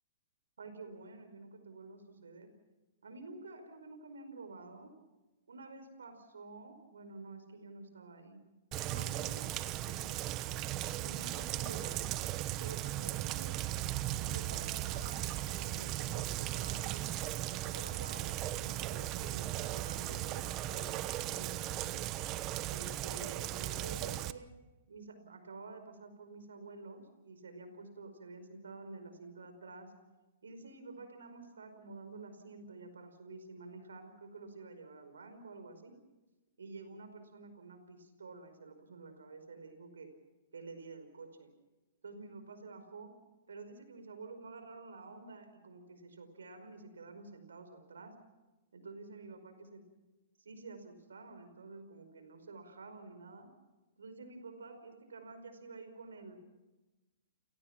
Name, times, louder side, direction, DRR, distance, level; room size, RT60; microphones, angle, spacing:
voice 1, 0.6-2.5 3.0-4.9 5.5-8.4 8.8-10.6 11.0-12.2 12.6-13.7 14.2-22.0 22.7-24.5 24.9-29.9 30.4-35.9 36.6-40.1 40.5-41.5 42.0-43.1 43.5-48.1 48.7-49.8 50.4-53.5 54.0-56.4, right 3 dB, 85° right, 8 dB, 5.0 m, -50 dB
Rain, 8.7-24.3, right 14 dB, 35° right, 1.0 m, -37 dB
29.5 x 18.0 x 6.0 m, 1.1 s
hypercardioid pair, 130°, 0 cm